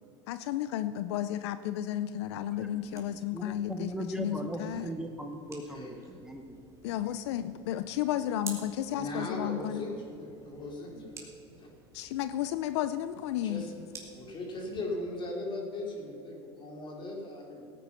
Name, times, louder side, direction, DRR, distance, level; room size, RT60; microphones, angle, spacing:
voice 1, 0.3-4.9 6.8-9.9 11.9-13.7, left 12 dB, 80° left, 13 dB, 0.5 m, -33 dB
sound 1, 2.5-14.9, right 4 dB, 20° right, 2.7 m, -52 dB
voice 2, 2.6-3.0 3.3-6.6, right 1 dB, 5° right, 4 dB, 0.9 m, -39 dB
voice 3, 5.7-6.2 8.9-11.3 11.6-11.7 13.4-13.7 14.1-17.7, left 2 dB, 35° left, 0 dB, 3.8 m, -39 dB
17.5 x 9.2 x 5.8 m, 2.9 s
supercardioid pair, 115°, 14 cm